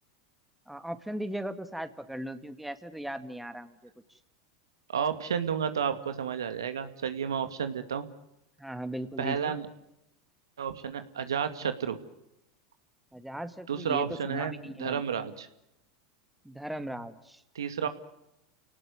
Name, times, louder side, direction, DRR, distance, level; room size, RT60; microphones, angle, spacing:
voice 1, 0.7-3.8 8.6-9.5 13.1-15.0 16.4-17.4, right 1 dB, 5° right, 10 dB, 2.1 m, -38 dB
voice 2, 4.9-8.1 9.2-9.7 10.6-12.0 13.7-14.5 14.8-15.5 17.5-17.9, right 7 dB, 90° right, 10 dB, 2.2 m, -31 dB
29.0 x 18.5 x 9.6 m, 0.86 s
hypercardioid pair, 100°, 2 cm